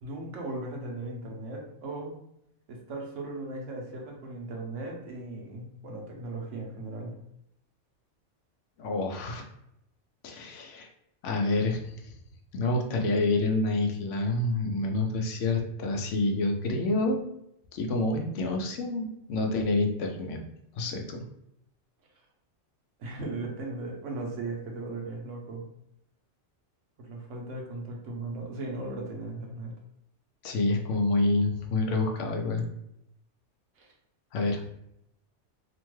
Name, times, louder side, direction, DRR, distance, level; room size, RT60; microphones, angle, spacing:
voice 1, 0.0-2.1 2.7-7.2 23.0-25.7 27.0-29.7 33.8-33.9, right 2 dB, 80° right, 0 dB, 1.0 m, -37 dB
voice 2, 8.8-9.4 10.2-10.9 11.2-12.1 12.5-17.2 17.7-20.4 20.8-21.2 30.4-32.7 34.3-34.6, left 2 dB, 80° left, 3 dB, 0.9 m, -28 dB
2.9 x 2.2 x 3.0 m, 0.79 s
omnidirectional pair, 1.2 m